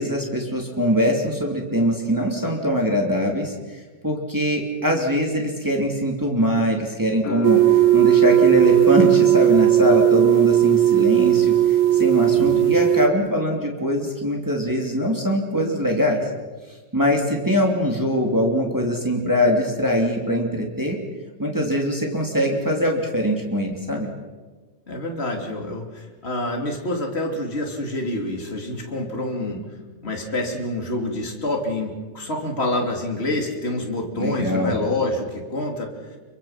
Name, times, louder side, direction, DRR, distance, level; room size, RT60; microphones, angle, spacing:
voice 1, 0.0-16.3 16.7-21.0 21.4-24.1 34.1-34.8, equal, 30° right, -1 dB, 0.3 m, -22 dB
sound 1, 7.2-14.1 14.3-15.2, left 6 dB, 80° left, 4.7 m, -39 dB
sound 2, 7.4-13.1, right 12 dB, 75° right, 2.9 m, -16 dB
voice 2, 12.3-12.7 24.9-29.6 30.0-35.9, left 1 dB, 20° left, 1 dB, 1.9 m, -27 dB
29.0 x 24.0 x 5.9 m, 1.3 s
omnidirectional pair, 5.9 m